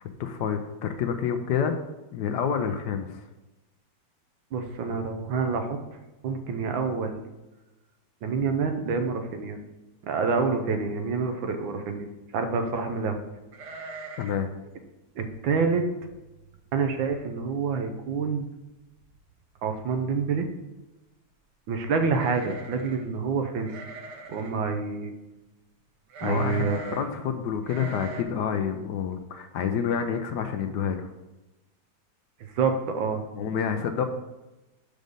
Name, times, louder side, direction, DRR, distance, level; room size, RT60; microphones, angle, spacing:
voice 1, 0.2-1.8 2.1-3.2 14.2-14.5 26.2-31.1 33.3-34.0, left 7 dB, 70° left, 7 dB, 1.1 m, -28 dB
voice 2, 4.5-5.8 6.2-7.2 8.2-9.6 10.0-12.1 12.3-13.2 15.2-15.9 16.7-18.5 19.6-20.5 21.7-23.7 24.3-25.1 26.2-27.0 32.4-33.2, right 5 dB, 80° right, 6 dB, 1.6 m, -27 dB
sound 1, 13.5-14.5 14.7-14.8 15.3-15.6 16.1-16.2 16.5-17.0 17.4-17.5 18.6-18.7 19.0-19.4 22.1-23.1 23.6-24.6 26.1-27.1 27.6-28.2, right 3 dB, 65° right, 1.4 m, -41 dB
6.4 x 5.2 x 5.3 m, 1.0 s
omnidirectional pair, 2.1 m